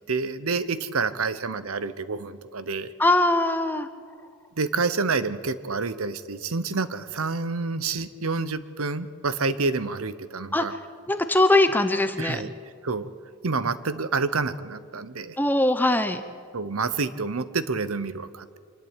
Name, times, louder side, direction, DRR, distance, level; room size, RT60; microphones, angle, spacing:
voice 1, 0.0-2.9 4.6-10.7 12.2-12.5 12.8-13.1 13.4-15.4 16.5-18.6, right 4 dB, 80° right, 14 dB, 1.0 m, -28 dB
voice 2, 3.0-3.9 10.5-10.7 11.1-12.4 15.4-16.2, left 2 dB, 10° left, 9 dB, 0.7 m, -21 dB
25.5 x 12.0 x 9.0 m, 2.1 s
head